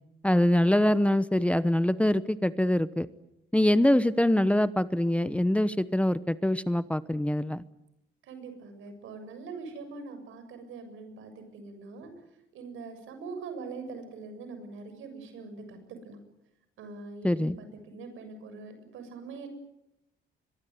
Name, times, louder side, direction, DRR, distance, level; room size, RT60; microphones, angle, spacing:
voice 1, 0.2-3.1 3.5-7.6 17.2-17.6, left 1 dB, 5° left, 15 dB, 1.0 m, -24 dB
voice 2, 8.2-12.1 12.5-16.2 16.8-19.5, right 4 dB, 85° right, 8 dB, 7.1 m, -43 dB
24.0 x 23.0 x 9.5 m, 0.83 s
cardioid pair, 90°, 20 cm